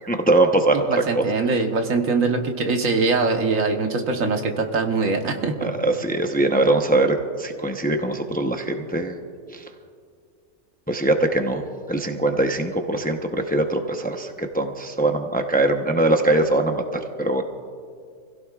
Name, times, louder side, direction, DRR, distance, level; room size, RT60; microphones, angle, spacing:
voice 1, 0.0-1.2 5.6-9.2 9.5-9.7 10.9-11.6 11.9-17.4, right 2 dB, 10° left, 4 dB, 0.6 m, -22 dB
voice 2, 0.9-5.7, right 3 dB, 80° right, 4 dB, 1.6 m, -22 dB
27.0 x 16.5 x 2.4 m, 2.2 s
omnidirectional pair, 1.4 m